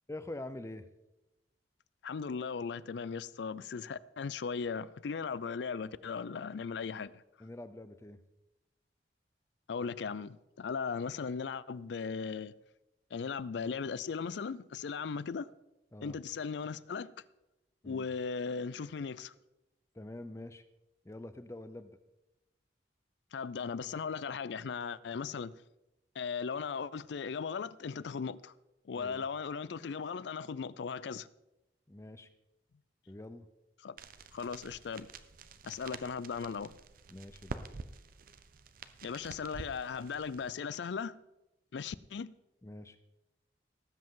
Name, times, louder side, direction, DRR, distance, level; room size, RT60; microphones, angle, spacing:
voice 1, 0.1-0.9 7.4-8.2 15.9-16.2 17.8-18.1 19.9-20.6 21.0-22.0 28.9-29.2 31.9-32.3 33.1-33.5 37.1-37.6 42.6-43.0, left 1 dB, 15° left, 0.6 m, -45 dB
voice 2, 2.0-7.2 9.7-12.5 13.1-15.5 16.0-17.1 17.8-19.3 23.3-25.6 26.2-28.5 28.8-31.3 33.8-34.0 34.3-35.1 35.6-36.7 39.0-41.2 41.7-42.3, left 5 dB, 75° left, 0.4 m, -37 dB
sound 1, 34.0-40.5, right 3 dB, 50° right, 0.6 m, -48 dB
18.5 x 7.8 x 3.8 m
head